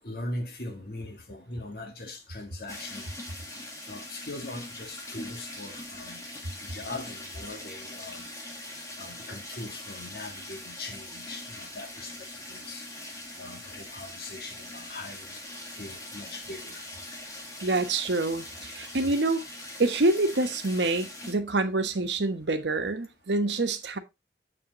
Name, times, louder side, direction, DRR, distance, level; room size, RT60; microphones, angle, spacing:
voice 1, 0.0-3.1 3.9-6.3 6.6-8.3 8.6-8.7 9.0-12.8 13.4-15.4 15.7-16.9, left 2 dB, 60° left, 1.8 m, -40 dB
sound 1, 2.7-21.3, left 1 dB, 20° left, 2.0 m, -42 dB
voice 2, 17.6-19.5 19.8-24.0, right 2 dB, 90° right, 1.1 m, -26 dB
7.3 x 7.2 x 3.0 m
head